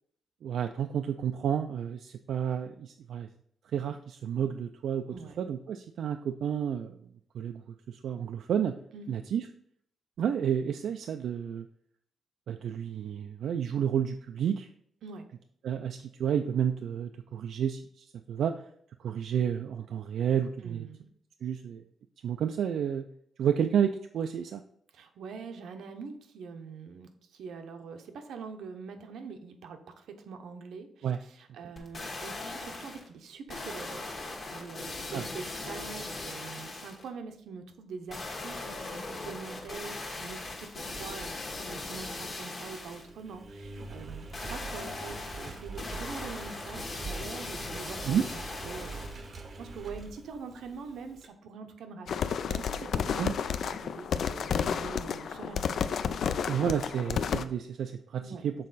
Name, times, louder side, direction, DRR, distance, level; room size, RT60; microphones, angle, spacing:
voice 1, 0.4-3.3 3.6-5.1 5.4-7.0 7.3-7.6 7.9-8.8 9.1-9.5 10.2-11.7 12.5-14.7 15.6-18.7 19.0-20.9 21.4-21.8 22.2-23.0 23.4-24.6 31.0-31.2 35.1-35.2 48.0-48.2 53.2-53.3 56.5-58.5, right 8 dB, 65° right, 7 dB, 0.3 m, -30 dB
voice 2, 5.1-5.4 8.9-9.2 15.0-15.3 20.6-21.1 24.9-34.1 34.5-49.3 49.6-53.2 53.5-55.8 58.2-58.4, right 5 dB, 85° right, 6 dB, 0.8 m, -44 dB
sound 1, 31.8-33.1 33.5-37.1 38.1-43.1 44.3-49.3 49.8-49.9, left 2 dB, 30° left, 1.2 m, -39 dB
Engine, 40.4-51.3, right 3 dB, 35° right, 0.7 m, -45 dB
sound 2, 52.1-57.4, left 7 dB, 55° left, 0.3 m, -31 dB
6.5 x 4.1 x 4.0 m, 0.67 s
wide cardioid pair, 180°, 0 cm